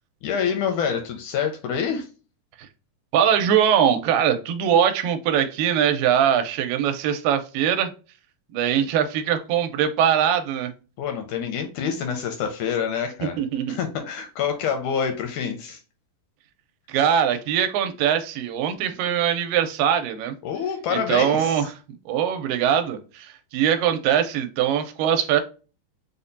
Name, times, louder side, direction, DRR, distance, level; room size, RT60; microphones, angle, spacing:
voice 1, 0.2-2.1 11.0-13.4 13.7-15.8 20.4-21.7, left 7 dB, 80° left, 5 dB, 1.8 m, -27 dB
voice 2, 3.1-7.9 8.5-10.7 13.2-13.8 16.9-20.4 20.9-21.7 22.1-25.4, right 9 dB, 90° right, 7 dB, 2.3 m, -22 dB
5.4 x 2.1 x 2.5 m, 0.34 s
omnidirectional pair, 3.9 m